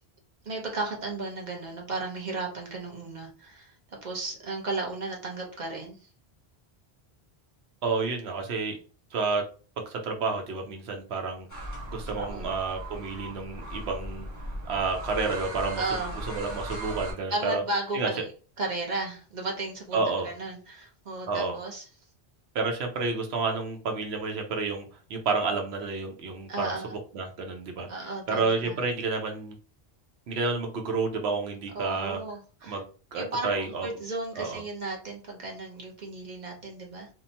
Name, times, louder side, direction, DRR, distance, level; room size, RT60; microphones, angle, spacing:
voice 1, 0.4-3.8 4.0-6.1 12.1-12.5 15.8-16.1 17.3-18.2 18.6-21.9 26.5-27.0 27.9-28.8 31.7-32.8 33.1-37.1, right 2 dB, 50° right, 0 dB, 0.8 m, -34 dB
voice 2, 7.8-8.8 9.1-9.4 9.8-14.3 14.7-15.8 16.3-17.6 17.9-18.1 19.9-20.3 21.3-21.6 22.5-26.7 27.1-29.6 30.3-32.2 32.6-33.9 34.4-34.6, right 4 dB, 80° right, 3 dB, 0.9 m, -30 dB
sound 1, 11.5-17.1, right 1 dB, 20° left, 0.7 m, -38 dB
2.8 x 2.1 x 2.7 m, 0.37 s
omnidirectional pair, 1.1 m